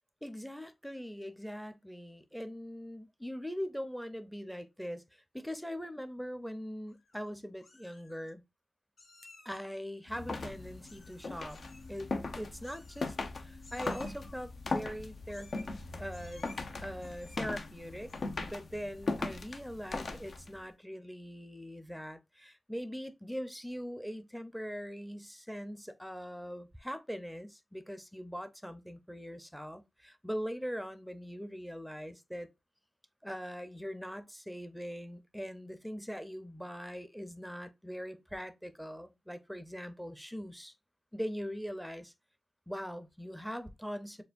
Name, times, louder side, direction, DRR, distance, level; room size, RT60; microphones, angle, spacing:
voice 1, 0.2-8.4 9.4-11.6 11.9-12.1 12.4-13.2 13.4-16.5 16.8-18.1 18.4-32.5 33.2-40.7 41.1-42.1 42.7-44.2, equal, ahead, 0.6 m, -41 dB
Meow, 6.9-7.3 7.6-8.3 9.0-9.8 10.8-11.2 11.5-11.9 12.6-13.3 13.6-14.4 15.3-15.8 16.1-16.6 17.0-17.6 18.0-18.4, left 3 dB, 90° left, 1.8 m, -58 dB
sound 1, 10.1-20.6, left 3 dB, 65° left, 0.7 m, -39 dB
6.6 x 2.5 x 2.5 m
wide cardioid pair, 125°, 0 cm